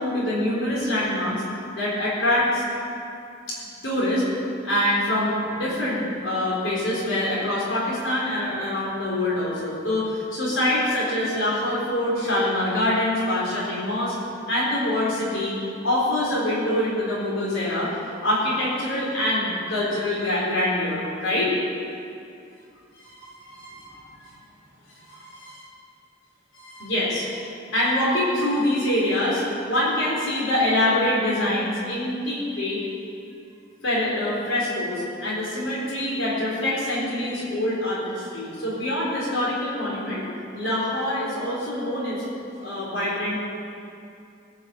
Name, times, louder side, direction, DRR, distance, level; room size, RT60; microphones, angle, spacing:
voice 1, 0.0-1.4 1.7-2.6 3.5-3.6 3.8-4.3 4.6-14.1 14.5-15.5 15.8-21.5 22.9-23.9 25.3-25.5 26.5-27.4 27.7-32.8 33.8-40.2 40.5-42.2 42.6-43.4, left 1 dB, 85° left, -7 dB, 4.1 m, -25 dB
18.5 x 6.5 x 7.7 m, 2.5 s
head